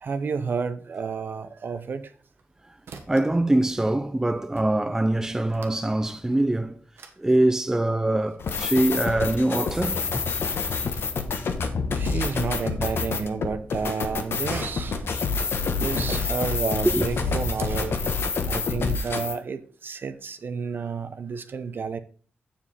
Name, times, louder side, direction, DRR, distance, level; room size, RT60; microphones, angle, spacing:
voice 1, 0.0-2.1 12.0-15.0 15.8-18.0 18.5-22.0, right 5 dB, 60° right, 0.8 m, -30 dB
sound 1, 1.9-2.5 2.8-3.4 3.6-4.2 4.5-4.6 5.0-5.9 6.3-6.4 7.0-7.2 7.4-7.6 8.2-8.8 10.0-11.1 11.7-12.7 13.0-13.2 13.7-13.8 14.1-14.2 14.4-14.6 15.1-15.2 15.8-17.7 18.9-19.3, right 5 dB, 85° right, 1.3 m, -46 dB
voice 2, 3.1-6.8 7.2-10.2 16.8-17.0, right 1 dB, 15° right, 0.5 m, -23 dB
sound 2, 8.4-19.3, left 4 dB, 75° left, 1.2 m, -27 dB
7.4 x 7.1 x 4.3 m
wide cardioid pair, 90°, 4 cm